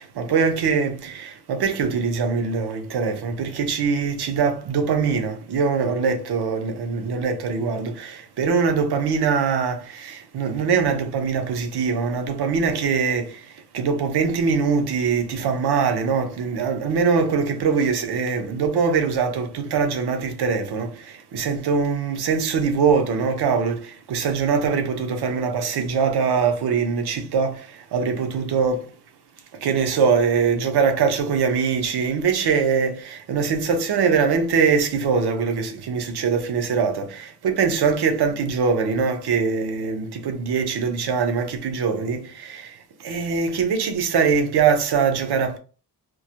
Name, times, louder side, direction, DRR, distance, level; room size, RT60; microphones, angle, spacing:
voice 1, 0.0-28.9 29.5-45.6, right 5 dB, 85° right, 0.6 m, -22 dB
2.2 x 2.0 x 2.7 m
wide cardioid pair, 110°, 38 cm